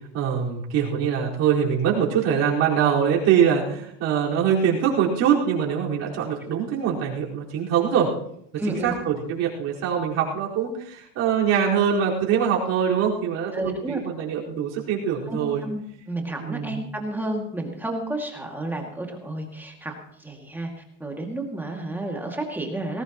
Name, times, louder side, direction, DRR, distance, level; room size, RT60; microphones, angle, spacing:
voice 1, 0.1-8.1 8.7-15.6 16.4-16.9, right 8 dB, 45° right, -4 dB, 4.7 m, -23 dB
voice 2, 8.6-8.9 13.5-14.0 15.3-19.9 20.2-23.0, right 1 dB, 5° right, 0 dB, 2.3 m, -31 dB
20.0 x 16.5 x 3.0 m, 0.68 s
supercardioid pair, 155°, 36 cm